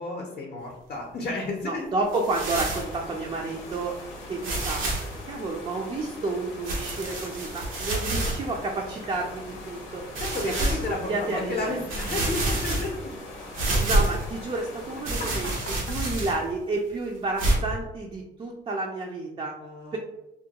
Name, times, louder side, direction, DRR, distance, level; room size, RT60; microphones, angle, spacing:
voice 1, 0.0-1.9 10.2-12.9 19.6-20.0, left 3 dB, 45° left, -1 dB, 0.5 m, -32 dB
voice 2, 1.6-4.0 4.3-4.8 5.2-10.1 10.4-11.8 13.8-15.6 15.9-19.6 19.9-20.0, right 3 dB, 30° right, 0 dB, 0.4 m, -30 dB
sound 1, 2.1-2.9 3.7-3.8 4.4-5.2 6.6-8.4 9.0-9.1 10.1-10.9 11.5-11.6 11.9-13.1 13.5-14.3 15.0-16.5 17.4-17.6, right 2 dB, 90° right, 0.7 m, -27 dB
sound 2, 2.6-15.8, left 2 dB, 90° left, 0.6 m, -42 dB
2.3 x 2.2 x 2.8 m, 0.90 s
cardioid pair, 90°, 20 cm